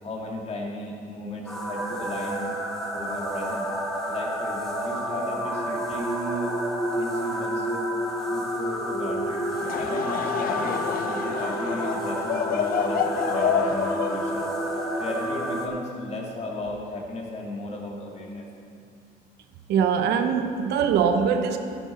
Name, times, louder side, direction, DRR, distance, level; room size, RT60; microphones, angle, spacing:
voice 1, 0.0-2.6 2.9-3.7 4.1-6.6 6.9-7.9 8.3-9.4 9.8-14.5 14.9-18.5 20.5-20.6, left 1 dB, 40° left, -2 dB, 2.3 m, -35 dB
sound 1, 1.5-15.7, right 1 dB, ahead, 1.6 m, -29 dB
Laughter / Crowd, 9.5-15.9, left 8 dB, 60° left, 0.6 m, -29 dB
voice 2, 19.7-21.6, right 7 dB, 80° right, 6 dB, 0.9 m, -22 dB
12.0 x 10.0 x 4.3 m, 2.4 s
cardioid pair, 110°, 17 cm